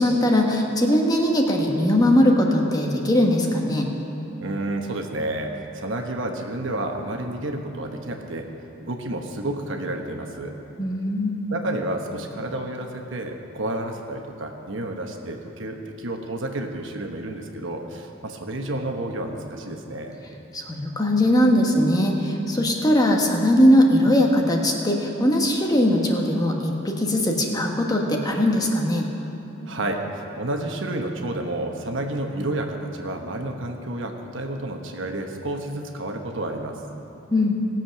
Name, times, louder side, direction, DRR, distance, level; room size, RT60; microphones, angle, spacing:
voice 1, 0.0-3.9 10.8-11.3 20.5-29.1 37.3-37.6, left 1 dB, 20° left, 0 dB, 1.2 m, -20 dB
voice 2, 4.4-8.5 8.8-10.5 11.5-20.1 29.7-36.8, right 1 dB, 65° right, 3 dB, 1.1 m, -30 dB
18.5 x 7.6 x 5.8 m, 3.0 s
head